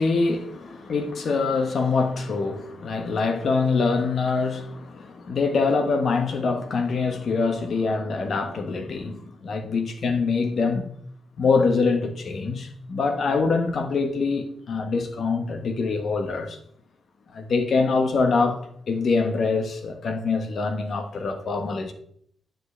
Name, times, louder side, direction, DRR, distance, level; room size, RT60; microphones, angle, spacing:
voice 1, 0.0-10.9 11.4-16.6 17.3-18.6 18.9-21.9, left 4 dB, 50° left, 1.3 m, -24 dB
9.7 x 9.2 x 3.3 m
wide cardioid pair, 175°, 0 cm